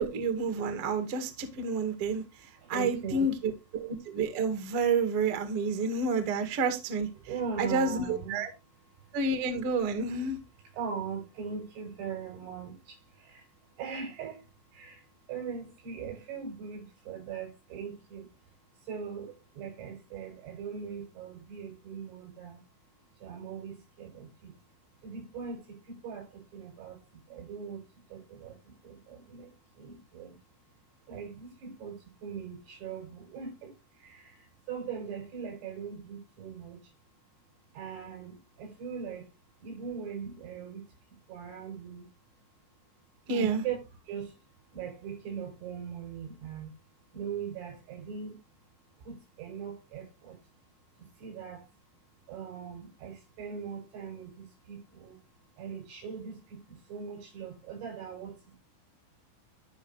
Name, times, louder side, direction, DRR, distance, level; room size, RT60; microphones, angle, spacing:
voice 1, 0.0-2.2 2.7-7.1 7.6-8.5 9.1-10.4 43.3-43.6, right 4 dB, 50° right, 1.7 m, -29 dB
voice 2, 2.6-3.4 7.2-8.4 10.7-13.5 13.8-14.5 14.7-18.3 18.8-22.6 23.2-24.5 25.0-27.8 28.1-29.5 29.8-30.4 31.1-36.8 37.7-39.3 39.6-40.9 41.3-42.1 43.3-43.8 44.1-44.3 44.7-46.7 47.1-48.4 49.0-50.4 51.0-51.7 52.3-55.2 55.6-58.6, right 6 dB, 85° right, 9.9 m, -40 dB
14.0 x 5.9 x 3.1 m
omnidirectional pair, 5.7 m